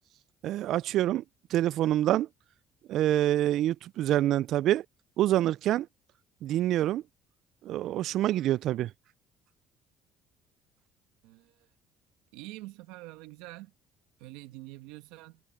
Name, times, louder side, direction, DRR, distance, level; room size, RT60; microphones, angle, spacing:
voice 1, 0.4-1.2 1.5-2.3 2.9-4.8 5.2-5.9 6.4-7.0 7.6-8.9, right 13 dB, 65° right, 0.3 m, -26 dB
voice 2, 11.2-11.6 12.3-13.7 14.2-15.4, right 19 dB, 85° right, 1.7 m, -46 dB
supercardioid pair, 85°, 0 cm